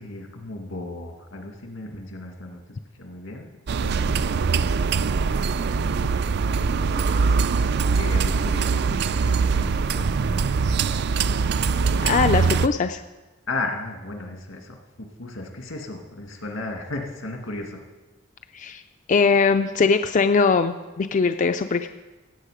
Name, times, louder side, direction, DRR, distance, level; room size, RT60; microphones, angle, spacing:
voice 1, 0.0-4.9 5.3-6.2 6.5-10.9 13.5-17.8, left 2 dB, 85° left, 3 dB, 2.1 m, -36 dB
sound 1, 3.7-12.7, right 5 dB, 60° right, 0.4 m, -22 dB
voice 2, 12.0-13.0 18.5-18.8 19.1-21.9, left 5 dB, 40° left, 9 dB, 0.4 m, -21 dB
16.5 x 8.3 x 5.0 m, 1.2 s
head